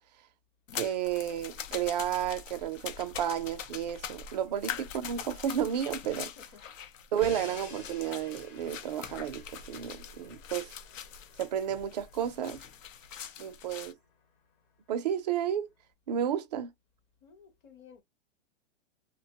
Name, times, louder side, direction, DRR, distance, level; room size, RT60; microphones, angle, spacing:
sound 1, 0.7-13.9, left 8 dB, 85° left, 0.8 m, -43 dB
voice 1, 0.7-6.3 7.1-10.7 11.4-12.6 13.4-13.9 14.9-15.7 16.1-16.7, right 10 dB, 35° right, 0.4 m, -32 dB
voice 2, 6.4-6.7 17.2-18.0, left 6 dB, 25° left, 0.7 m, -55 dB
Crash cymbal, 7.2-13.2, left 5 dB, 40° left, 1.1 m, -50 dB
2.9 x 2.1 x 2.8 m
hypercardioid pair, 150°, 38 cm